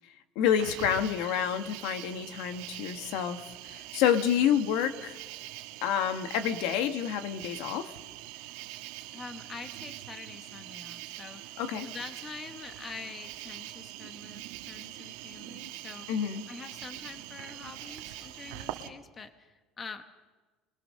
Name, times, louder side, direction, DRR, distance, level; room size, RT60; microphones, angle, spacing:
voice 1, 0.3-5.2 5.8-7.9 11.6-11.9 16.1-16.4, left 9 dB, 70° left, 8 dB, 1.6 m, -28 dB
Cricket, 0.5-18.9, right 15 dB, 90° right, 1.7 m, -43 dB
voice 2, 9.1-20.0, left 4 dB, 20° left, 8 dB, 1.2 m, -45 dB
26.5 x 22.0 x 6.6 m, 1.3 s
cardioid pair, 170°, 0 cm